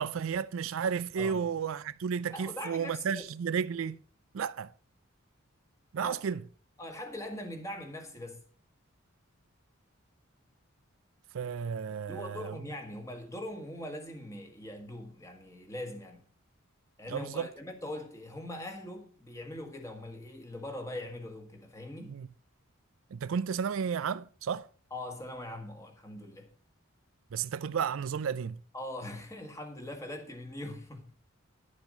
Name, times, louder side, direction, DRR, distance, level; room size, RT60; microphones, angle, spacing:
voice 1, 0.0-4.0 4.3-4.7 5.9-6.4 11.3-12.6 17.1-17.5 22.1-22.3 23.1-24.7 27.3-28.6, right 7 dB, 70° right, 0.4 m, -32 dB
voice 2, 1.2-1.5 2.3-3.3 6.0-6.2 6.8-8.4 12.1-16.2 17.0-22.2 24.9-26.5 28.7-31.1, left 1 dB, 15° left, 1.7 m, -41 dB
11.0 x 7.2 x 5.2 m
head